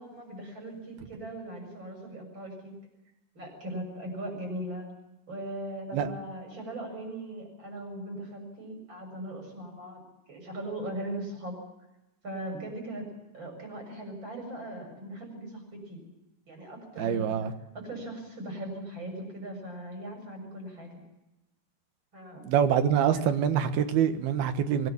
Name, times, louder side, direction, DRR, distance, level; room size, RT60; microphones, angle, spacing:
voice 1, 0.0-2.7 3.3-4.9 5.3-10.0 10.3-11.6 12.2-16.0 16.5-17.4 17.7-21.0 22.1-22.5 23.1-23.3, right 1 dB, 30° right, 3 dB, 7.6 m, -39 dB
voice 2, 17.0-17.5 22.4-24.9, right 8 dB, 85° right, 9 dB, 3.4 m, -25 dB
24.0 x 19.5 x 7.2 m, 0.94 s
omnidirectional pair, 4.3 m